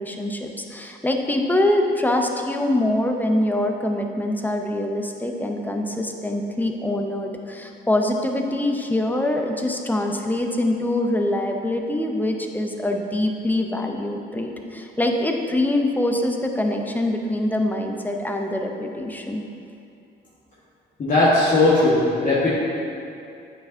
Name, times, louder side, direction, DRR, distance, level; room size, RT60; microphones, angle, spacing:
voice 1, 0.0-19.4, left 1 dB, 10° left, 3 dB, 0.5 m, -24 dB
voice 2, 21.0-22.5, left 2 dB, 45° left, -10 dB, 1.4 m, -18 dB
8.8 x 4.9 x 2.6 m, 2.6 s
cardioid pair, 90°, 20 cm